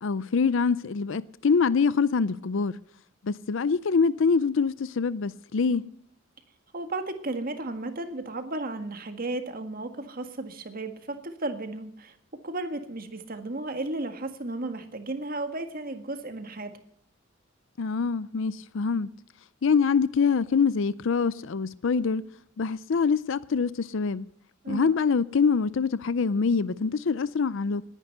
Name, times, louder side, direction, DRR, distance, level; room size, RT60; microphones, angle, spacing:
voice 1, 0.0-2.7 3.2-5.9 17.8-19.1 19.6-22.3 22.6-24.3 24.7-27.9, left 5 dB, 65° left, 0.5 m, -25 dB
voice 2, 6.7-12.2 12.4-16.8 24.6-25.0, right 2 dB, 45° right, 1.8 m, -34 dB
19.5 x 9.9 x 6.6 m
head